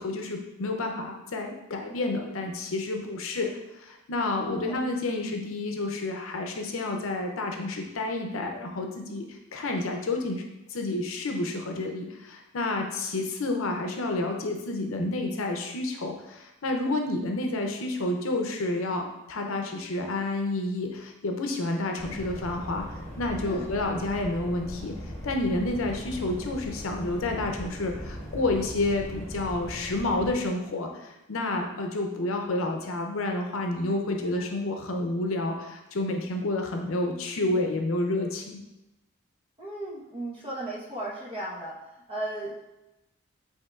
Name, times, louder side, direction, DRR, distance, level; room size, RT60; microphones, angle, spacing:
voice 1, 0.0-9.3 9.5-10.4 10.7-22.8 23.2-24.9 25.2-38.6, left 2 dB, 80° left, 3 dB, 0.6 m, -30 dB
voice 2, 4.4-4.8 23.4-23.7 34.3-34.4 39.6-41.8 42.1-42.7, right 1 dB, 25° right, -6 dB, 1.0 m, -36 dB
sound 1, 22.0-30.3, equal, 10° left, 0.8 m, -39 dB
5.3 x 3.7 x 2.4 m, 0.94 s
head